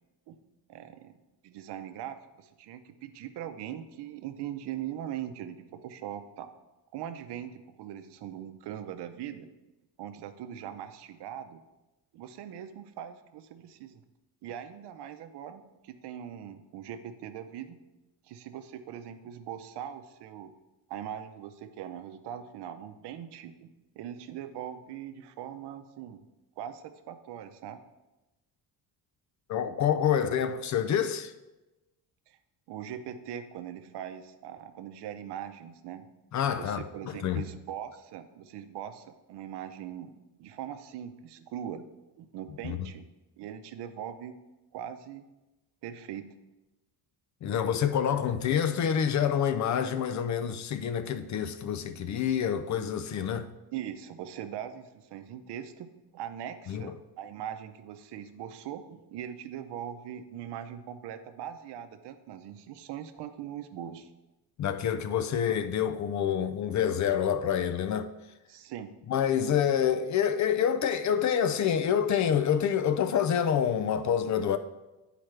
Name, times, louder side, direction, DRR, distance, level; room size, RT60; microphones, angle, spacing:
voice 1, 0.7-1.1 1.4-6.5 6.9-9.5 10.0-11.6 12.1-14.0 14.4-17.8 18.2-20.5 20.9-23.7 24.0-26.2 26.6-27.8 32.3-32.4 32.7-36.1 36.6-40.1 40.4-41.9 42.2-43.1 43.4-44.3 44.7-45.3 45.8-46.2 53.7-64.1 68.5-68.9, right 10 dB, 70° right, 0.7 m, -41 dB
voice 2, 29.5-31.3 36.3-37.4 42.6-42.9 47.4-53.5 56.7-56.9 64.6-68.1 69.1-74.6, left 8 dB, 45° left, 0.4 m, -27 dB
10.0 x 4.9 x 3.3 m
cardioid pair, 145°, 42 cm